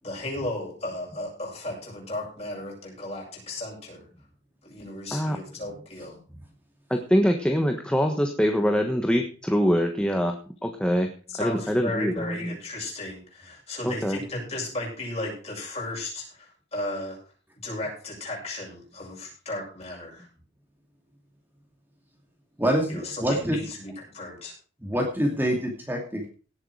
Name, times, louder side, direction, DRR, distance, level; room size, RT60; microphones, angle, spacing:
voice 1, 0.0-4.1 4.6-6.2 11.3-17.2 17.6-20.3 22.9-24.5, left 2 dB, 35° left, -1 dB, 7.7 m, -35 dB
voice 2, 6.9-10.4 10.6-11.1 11.4-12.5 13.8-14.2, equal, 5° left, 4 dB, 1.3 m, -24 dB
voice 3, 22.6-23.6 24.8-26.3, equal, 10° right, 1 dB, 2.6 m, -26 dB
17.5 x 8.3 x 4.8 m, 0.38 s
head